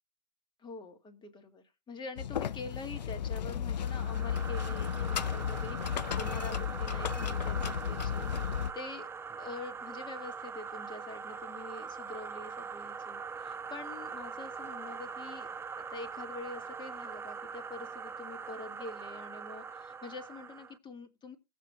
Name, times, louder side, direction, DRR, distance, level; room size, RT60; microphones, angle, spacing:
voice 1, 0.6-9.1 9.4-15.5 15.8-21.4, left 3 dB, 20° left, 7 dB, 2.0 m, -45 dB
sound 1, 2.2-8.7, left 8 dB, 85° left, 0.5 m, -34 dB
sound 2, 3.8-20.8, right 5 dB, 10° right, 0.4 m, -42 dB
18.5 x 7.5 x 2.3 m, 0.25 s
hypercardioid pair, 105°, 21 cm